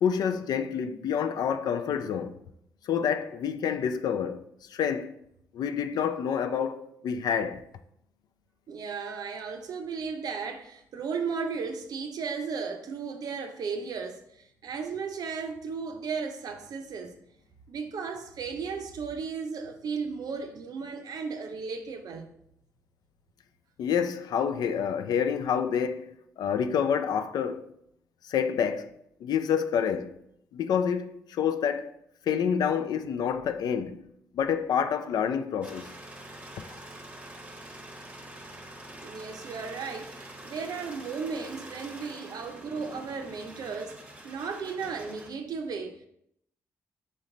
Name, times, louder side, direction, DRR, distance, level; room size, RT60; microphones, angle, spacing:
voice 1, 0.0-2.4 2.9-4.4 4.7-5.2 5.5-7.6 23.8-27.7 28.2-28.9 29.2-30.1 30.5-31.9 32.3-34.0 34.3-35.9 36.6-36.7, left 7 dB, 70° left, 0.4 m, -28 dB
voice 2, 8.7-17.2 17.7-22.3 39.0-44.0 44.2-46.1, right 5 dB, 65° right, 0.5 m, -35 dB
sound 1, 35.6-45.3, right 1 dB, 15° right, 0.8 m, -45 dB
4.2 x 3.1 x 3.7 m
supercardioid pair, 55°, 7 cm